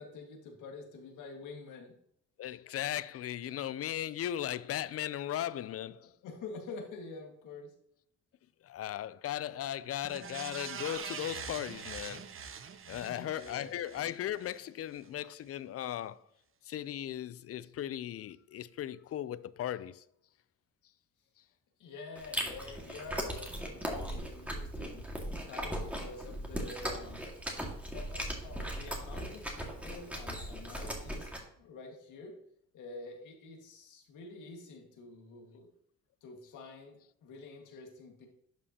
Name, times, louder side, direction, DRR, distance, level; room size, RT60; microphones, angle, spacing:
voice 1, 0.0-1.9 6.2-7.7 12.8-13.7 21.8-25.1 25.5-27.2 27.9-32.4 32.7-35.7 36.2-38.3, left 3 dB, 85° left, 1.9 m, -47 dB
voice 2, 2.4-6.1 8.6-12.2 12.9-16.2 16.6-20.0, left 11 dB, 50° left, 0.4 m, -37 dB
sound 1, 10.0-14.6 15.0-15.1, right 7 dB, 45° right, 0.8 m, -44 dB
Chewing mastication, 22.2-31.4, equal, 5° right, 1.9 m, -38 dB
11.0 x 5.4 x 2.8 m
cardioid pair, 90°, 30 cm